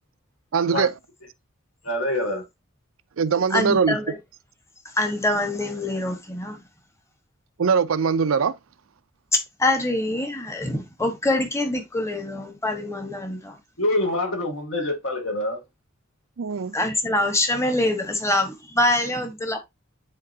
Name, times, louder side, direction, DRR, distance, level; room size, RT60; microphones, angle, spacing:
voice 1, 0.5-0.9 3.2-4.0 7.6-8.5 16.4-16.8, right 5 dB, 70° right, 0.5 m, -21 dB
voice 2, 1.8-2.5 13.8-15.6, left 1 dB, 65° left, 2.1 m, -25 dB
voice 3, 3.5-4.1 5.0-6.6 9.3-13.6 16.7-19.6, left 1 dB, 15° left, 1.2 m, -24 dB
9.9 x 4.0 x 2.7 m
head